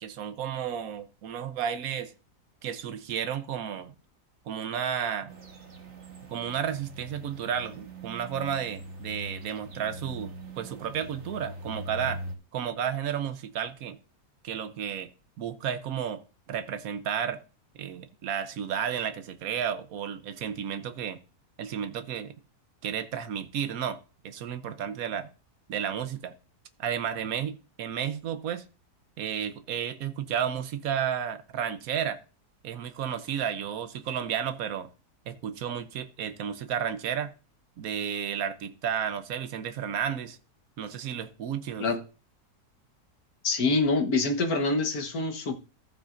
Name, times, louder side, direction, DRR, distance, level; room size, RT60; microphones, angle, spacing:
voice 1, 0.0-2.1 2.6-3.9 4.5-5.3 6.3-12.2 12.5-14.0 14.4-15.1 15.4-16.2 16.5-17.4 17.7-21.2 21.6-22.4 22.8-24.0 24.2-25.3 25.7-26.3 26.8-28.7 29.2-32.2 32.6-34.9 35.3-37.3 37.8-40.4 40.8-41.9, right 8 dB, 65° right, 1.1 m, -32 dB
sound 1, 5.3-12.4, right 1 dB, 45° right, 1.6 m, -42 dB
voice 2, 43.4-45.6, left 3 dB, 65° left, 1.7 m, -25 dB
14.5 x 7.5 x 2.5 m
omnidirectional pair, 1.7 m